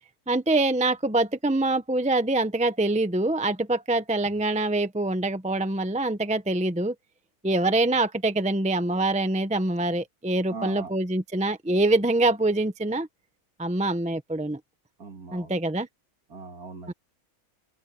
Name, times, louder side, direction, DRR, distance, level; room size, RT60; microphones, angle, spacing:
voice 1, 0.3-6.9 7.4-13.1 13.6-14.6 15.3-15.9 16.9-17.0, right 2 dB, 5° right, 0.7 m, -25 dB
voice 2, 10.5-10.9 15.0-15.6 16.3-16.9, right 4 dB, 80° right, 2.8 m, -39 dB
open air
omnidirectional pair, 1.6 m